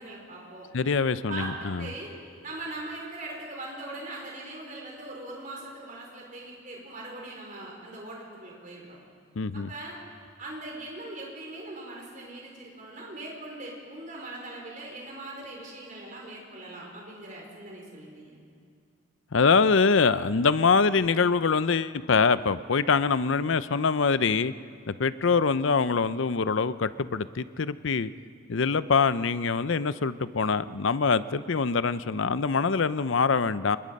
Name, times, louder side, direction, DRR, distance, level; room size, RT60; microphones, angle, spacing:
voice 1, 0.0-0.7 1.3-2.1 2.4-9.0 9.5-10.0 10.4-18.4, right 2 dB, 40° right, -2 dB, 4.7 m, -40 dB
voice 2, 0.7-1.9 9.4-9.7 19.3-24.5 24.9-28.1 28.5-33.8, left 5 dB, 65° left, 15 dB, 0.6 m, -24 dB
27.5 x 21.5 x 5.4 m, 2.3 s
head